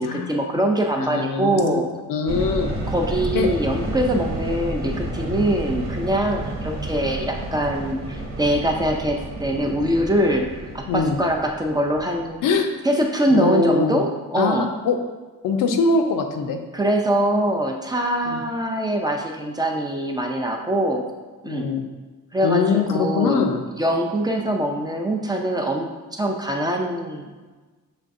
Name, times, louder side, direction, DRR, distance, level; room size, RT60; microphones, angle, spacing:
voice 1, 0.0-1.9 2.9-12.4 12.8-14.7 16.7-21.0 21.4-21.7 22.3-23.5 23.7-27.3, right 1 dB, 15° right, 1 dB, 0.4 m, -23 dB
voice 2, 1.0-1.8 2.1-2.7 3.3-3.5 5.3-5.5 10.9-11.2 12.4-12.7 13.3-14.0 14.3-15.0 15.4-16.6 18.3-18.4 21.4-21.8 22.4-23.6, left 4 dB, 85° left, 5 dB, 0.6 m, -22 dB
sound 1, 2.3-12.5, right 1 dB, 45° right, 1.0 m, -31 dB
5.8 x 3.2 x 2.6 m, 1.3 s
cardioid pair, 125°, 31 cm